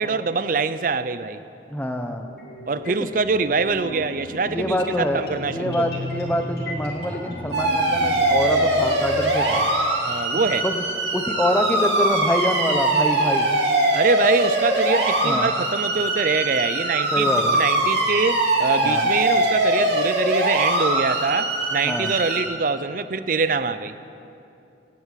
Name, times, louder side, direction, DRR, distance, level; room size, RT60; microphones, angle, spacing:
voice 1, 0.0-1.4 2.7-5.9 10.0-10.7 13.9-23.9, right 4 dB, 50° right, 13 dB, 0.5 m, -24 dB
voice 2, 1.7-2.3 2.9-3.1 4.5-9.6 10.6-10.7 11.1-13.5 15.2-15.5 17.1-17.6 18.8-19.1 21.8-22.1, left 1 dB, 10° left, 5 dB, 0.9 m, -25 dB
sound 1, 2.2-9.3, left 1 dB, 60° left, 2.7 m, -35 dB
sound 2, 7.5-22.4, right 1 dB, 80° right, 2.5 m, -22 dB
17.0 x 8.5 x 8.3 m, 2.7 s
head